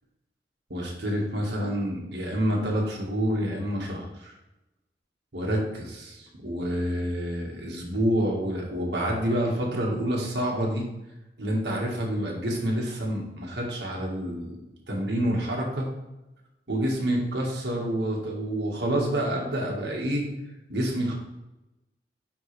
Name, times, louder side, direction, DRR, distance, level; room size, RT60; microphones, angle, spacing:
voice 1, 0.7-4.3 5.3-10.9 11.4-14.6 14.9-15.9 16.7-20.2 20.7-21.1, equal, 65° right, -2 dB, 1.6 m, -28 dB
9.1 x 3.9 x 3.3 m, 0.97 s
head